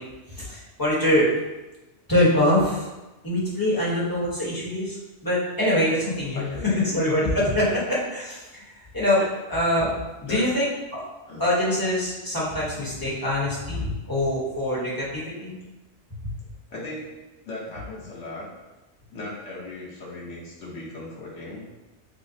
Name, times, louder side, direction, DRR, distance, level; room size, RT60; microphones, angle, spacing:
voice 1, 0.3-1.3 2.1-2.9 3.2-5.0 5.2-6.4 6.9-8.6 8.9-9.2 9.5-9.9 10.2-11.0 11.4-15.5 16.2-16.3, left 1 dB, 20° left, -7 dB, 1.0 m, -24 dB
voice 2, 6.3-6.9 7.6-7.8 9.2-9.3 10.3-10.4 11.3-11.4 16.7-18.5 19.1-21.7, left 2 dB, 80° left, -5 dB, 1.4 m, -37 dB
6.2 x 2.1 x 2.8 m, 1.1 s
omnidirectional pair, 1.2 m